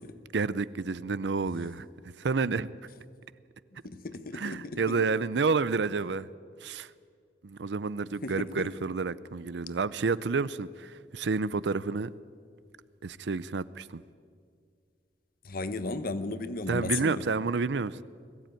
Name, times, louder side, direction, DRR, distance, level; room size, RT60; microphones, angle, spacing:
voice 1, 0.3-1.9 2.2-2.7 4.3-6.3 6.6-6.9 7.4-12.1 13.0-14.0 16.7-18.0, right 4 dB, 80° right, 0.6 m, -29 dB
voice 2, 3.8-5.0 8.2-8.7 15.4-17.2, left 3 dB, 55° left, 1.0 m, -35 dB
21.0 x 15.0 x 9.1 m
head